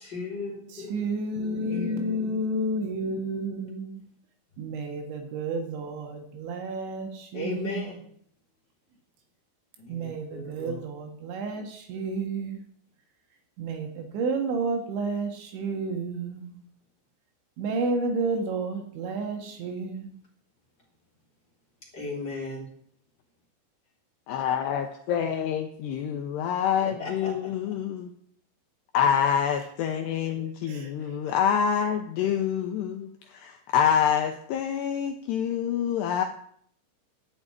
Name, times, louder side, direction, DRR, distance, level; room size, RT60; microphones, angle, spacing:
voice 1, 0.0-1.1 1.4-2.4 4.5-4.8 7.3-8.0 9.8-10.8 21.9-22.6 26.8-27.8, left 3 dB, 25° left, -3 dB, 2.9 m, -37 dB
voice 2, 0.9-4.0 4.6-7.8 9.9-12.6 13.6-16.5 17.6-20.1 30.7-30.9, right 2 dB, 70° right, 3 dB, 3.9 m, -31 dB
voice 3, 24.3-28.1 28.9-36.2, left 8 dB, 80° left, 5 dB, 2.5 m, -26 dB
12.0 x 6.8 x 8.8 m, 0.64 s
omnidirectional pair, 5.7 m